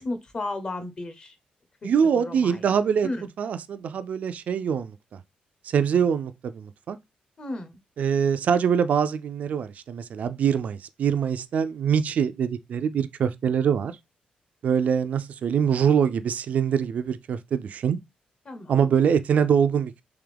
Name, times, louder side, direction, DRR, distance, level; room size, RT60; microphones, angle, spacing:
voice 1, 0.0-1.4 1.8-1.9 2.1-2.8 3.0-3.3 7.4-7.8 18.4-18.9, left 2 dB, 35° left, 0.8 m, -34 dB
voice 2, 1.8-3.1 3.4-5.2 5.6-7.0 8.0-13.9 14.6-18.0 18.7-19.9, right 7 dB, 60° right, 0.4 m, -24 dB
3.5 x 3.3 x 3.4 m
cardioid pair, 120°, 3 cm